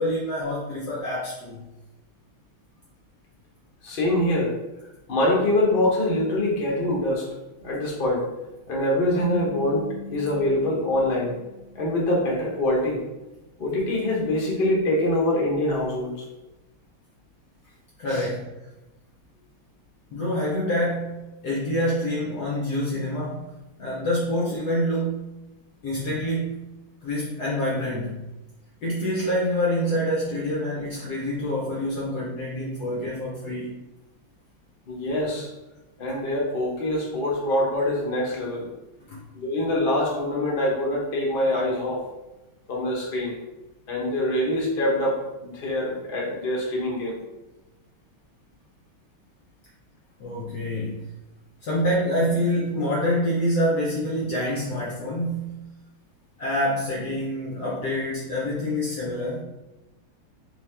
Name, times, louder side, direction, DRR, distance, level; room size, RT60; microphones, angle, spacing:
voice 1, 0.0-1.6 18.0-18.5 20.1-23.5 23.8-25.3 25.8-26.7 27.0-28.2 28.8-33.7 39.1-39.2 50.2-51.1 51.6-55.6 56.4-59.4, equal, 65° left, -5 dB, 1.0 m, -26 dB
voice 2, 3.8-4.5 5.1-7.3 7.6-8.2 8.7-11.4 11.7-13.0 13.6-16.1 18.1-18.3 34.9-35.5 36.0-38.7 39.3-42.0 42.7-43.4 43.9-47.2, left 1 dB, 50° left, -3 dB, 0.7 m, -24 dB
sound 1, 9.2-12.3, left 3 dB, 20° right, 1.0 m, -39 dB
3.3 x 3.0 x 3.3 m, 1.0 s
omnidirectional pair, 2.3 m